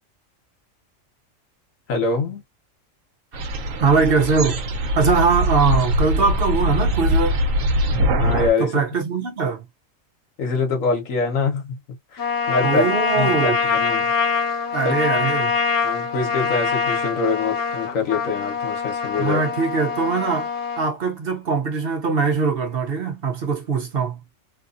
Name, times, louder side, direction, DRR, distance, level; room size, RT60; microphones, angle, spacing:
voice 1, 1.9-2.4 8.2-8.7 10.4-11.8 12.1-12.9 13.2-14.1 14.8-14.9 15.8-19.4, left 4 dB, 80° left, 1.5 m, -24 dB
sound 1, 3.3-8.5, equal, 75° right, 1.1 m, -22 dB
voice 2, 3.8-7.4 8.6-9.6 12.6-13.6 14.7-15.6 19.2-24.2, right 5 dB, 50° right, 0.9 m, -22 dB
Trumpet, 12.2-20.9, left 5 dB, 60° left, 1.1 m, -24 dB
3.1 x 2.4 x 2.5 m
omnidirectional pair, 1.4 m